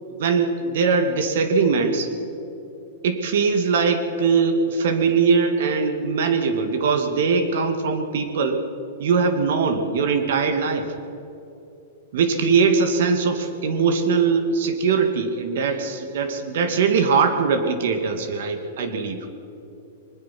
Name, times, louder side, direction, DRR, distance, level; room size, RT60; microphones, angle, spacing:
voice 1, 0.1-2.1 3.0-8.6 9.0-10.9 12.1-19.2, right 5 dB, 70° right, 7 dB, 2.3 m, -21 dB
22.5 x 20.0 x 6.0 m, 2.9 s
hypercardioid pair, 145°, 0 cm